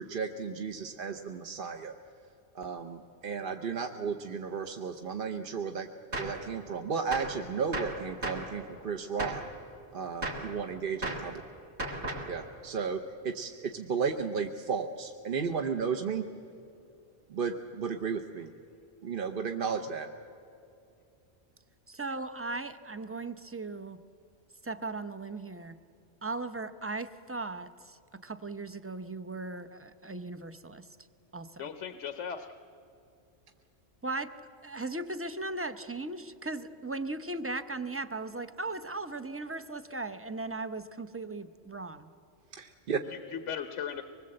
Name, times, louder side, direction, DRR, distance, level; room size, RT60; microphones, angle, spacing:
voice 1, 0.0-1.9 2.5-5.9 6.2-9.4 9.9-11.3 12.3-16.2 17.3-18.5 19.0-20.1 42.5-43.0, right 5 dB, 50° right, 5 dB, 0.9 m, -34 dB
Gunshot gunfire, 6.1-6.4 7.1-7.4 7.7-8.5 9.2-9.5 10.2-10.5 11.0-11.3 11.8-12.3, right 1 dB, 70° right, 2.9 m, -35 dB
voice 2, 21.9-24.0 24.6-25.8 26.2-30.9 31.3-31.7 34.0-34.3 34.6-42.1, right 2 dB, 15° right, 11 dB, 0.5 m, -37 dB
voice 3, 31.6-32.6 43.1-44.0, left 7 dB, 80° left, 8 dB, 1.2 m, -37 dB
24.5 x 20.5 x 7.7 m, 2.6 s
omnidirectional pair, 1.2 m